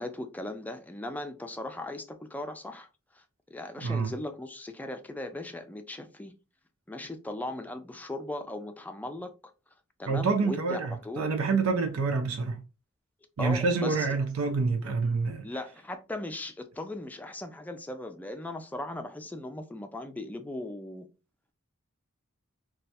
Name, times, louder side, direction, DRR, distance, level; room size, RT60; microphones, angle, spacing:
voice 1, 0.0-2.9 3.1-3.2 3.5-6.3 6.9-9.5 10.0-11.4 13.4-14.1 15.4-21.1, left 1 dB, 10° left, 0.3 m, -38 dB
voice 2, 3.8-4.1 10.1-12.6 13.4-15.5, right 4 dB, 75° right, 0.5 m, -27 dB
3.1 x 2.3 x 2.7 m
head